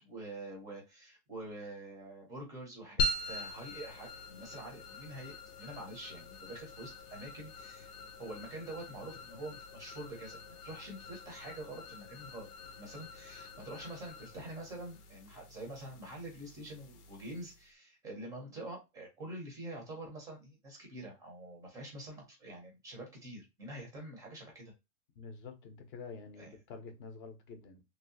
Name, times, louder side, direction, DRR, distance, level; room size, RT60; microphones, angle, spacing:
voice 1, 0.0-7.9 8.2-12.5 12.8-24.7 26.4-26.5, right 1 dB, 10° right, 0.6 m, -46 dB
sound 1, 3.0-17.7, left 2 dB, 90° left, 0.9 m, -43 dB
voice 2, 25.2-27.9, left 4 dB, 35° left, 0.7 m, -48 dB
3.2 x 2.7 x 2.6 m
supercardioid pair, 160°, 45 cm